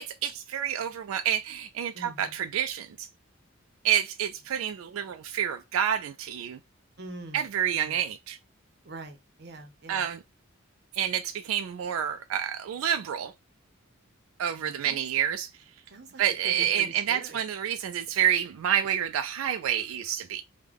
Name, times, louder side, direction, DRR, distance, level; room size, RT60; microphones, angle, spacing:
voice 1, 0.0-3.1 3.8-6.6 7.3-8.4 9.9-10.2 10.9-13.3 14.4-15.5 16.2-20.4, right 9 dB, 90° right, 0.3 m, -28 dB
voice 2, 1.9-2.4 7.0-7.4 7.7-8.0 8.8-10.0 14.5-15.0 15.9-17.4, right 2 dB, 55° right, 0.7 m, -44 dB
3.4 x 2.2 x 3.5 m
head